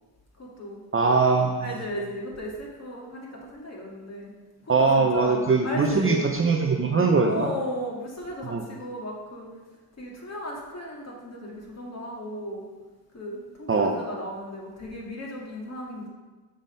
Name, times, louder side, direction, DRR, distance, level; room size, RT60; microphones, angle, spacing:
voice 1, 0.4-0.8 1.6-4.3 4.6-6.2 7.2-9.5 10.0-12.6 13.1-16.1, left 1 dB, 35° left, -3 dB, 2.1 m, -35 dB
voice 2, 0.9-1.6 4.7-7.5 8.5-8.6 13.7-13.9, right 4 dB, 30° right, 2 dB, 0.7 m, -21 dB
7.1 x 3.8 x 5.4 m, 1.3 s
supercardioid pair, 70°, 47 cm